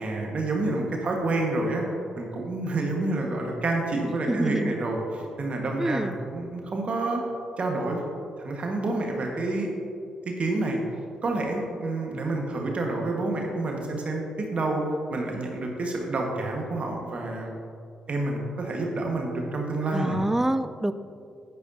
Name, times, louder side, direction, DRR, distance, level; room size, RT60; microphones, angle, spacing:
voice 1, 0.0-1.8 2.2-7.2 7.6-8.0 8.4-9.7 10.2-10.8 11.2-14.8 15.1-17.5 18.1-20.2, right 2 dB, 45° right, 0 dB, 1.5 m, -28 dB
voice 2, 4.0-4.8 5.8-6.2 19.9-20.9, right 1 dB, 10° right, 12 dB, 0.4 m, -26 dB
10.0 x 9.2 x 2.7 m, 2.4 s
hypercardioid pair, 40°, 3 cm